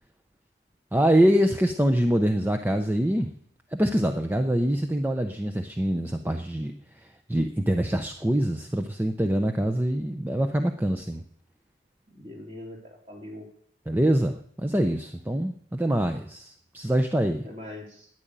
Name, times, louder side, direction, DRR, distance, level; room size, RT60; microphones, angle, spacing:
voice 1, 0.9-3.3 3.7-6.7 7.0-11.2 13.9-17.5, right 1 dB, 10° right, 5 dB, 0.6 m, -24 dB
voice 2, 12.1-13.5 17.4-18.1, left 1 dB, 35° right, -1 dB, 3.7 m, -42 dB
10.5 x 10.5 x 8.9 m, 0.66 s
head